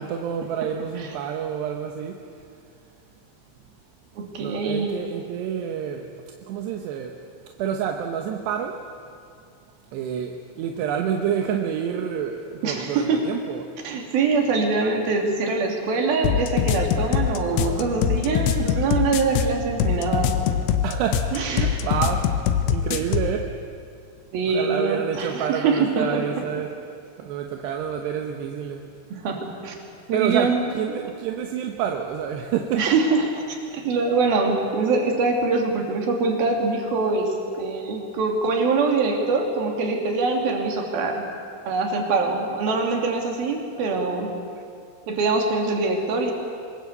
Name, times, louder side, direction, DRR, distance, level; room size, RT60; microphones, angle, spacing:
voice 1, 0.0-2.2 4.4-6.1 6.5-7.2 7.6-8.8 9.9-13.6 17.5-18.7 20.8-23.6 24.5-26.7 27.2-28.8 30.1-32.9, right 8 dB, 70° right, 3 dB, 2.9 m, -28 dB
voice 2, 4.2-5.0 12.6-13.2 13.8-20.4 21.3-21.8 24.3-26.2 29.1-29.8 30.1-30.7 32.8-41.3 41.6-44.3 45.1-46.3, right 4 dB, 50° right, 2 dB, 4.2 m, -24 dB
sound 1, 16.2-23.3, left 9 dB, 75° left, 2.6 m, -23 dB
26.0 x 20.5 x 8.2 m, 2.4 s
omnidirectional pair, 5.8 m